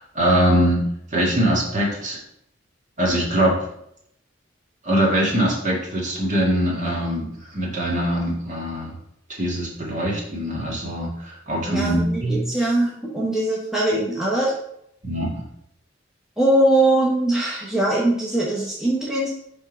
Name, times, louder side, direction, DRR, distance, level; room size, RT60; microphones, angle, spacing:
voice 1, 0.0-2.2 3.0-3.7 4.8-8.9 9.3-12.4 15.0-15.5, right 1 dB, 40° right, -4 dB, 1.8 m, -22 dB
voice 2, 11.7-14.5 16.4-19.3, right 1 dB, 5° right, -6 dB, 1.0 m, -21 dB
5.2 x 3.6 x 5.1 m, 0.73 s
head